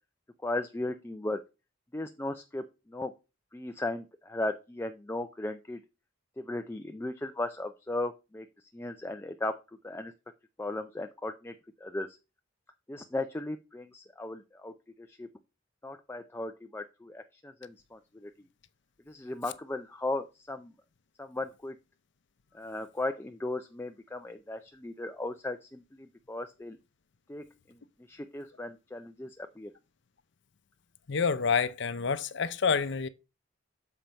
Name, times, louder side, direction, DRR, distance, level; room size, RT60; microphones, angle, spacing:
voice 1, 0.4-1.4 1.9-3.1 3.5-5.8 6.4-8.5 8.7-9.5 9.8-10.1 10.6-11.5 11.8-12.1 12.9-14.7 15.0-15.3 15.8-18.3 19.1-20.7 21.2-21.8 22.5-26.8 27.3-27.4 28.1-29.7, left 2 dB, 10° left, 0.4 m, -36 dB
voice 2, 31.1-33.1, left 5 dB, 65° left, 0.6 m, -28 dB
7.1 x 4.5 x 5.1 m
head